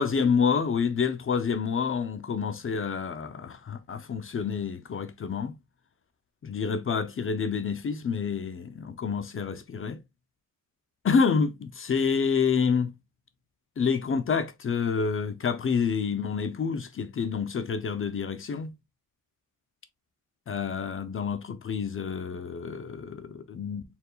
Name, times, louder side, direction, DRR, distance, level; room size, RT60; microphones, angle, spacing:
voice 1, 0.0-5.5 6.4-10.0 11.0-12.9 13.8-18.7 20.5-23.8, left 6 dB, 40° left, 0.6 m, -28 dB
4.4 x 3.6 x 2.3 m
cardioid pair, 110°, 34 cm